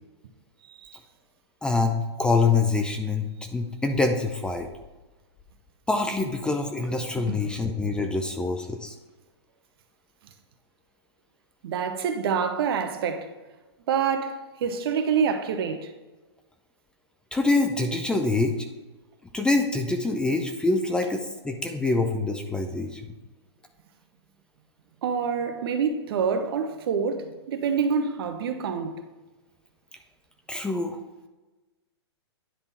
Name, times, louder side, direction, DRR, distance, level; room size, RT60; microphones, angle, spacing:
voice 1, 1.6-4.7 5.9-8.9 17.3-18.6 19.3-23.0 30.5-31.0, left 3 dB, 5° left, 0.4 m, -25 dB
voice 2, 11.6-13.3 13.9-15.9 25.0-29.0, right 6 dB, 60° right, 1.0 m, -27 dB
10.0 x 3.5 x 4.2 m
hypercardioid pair, 135°, 14 cm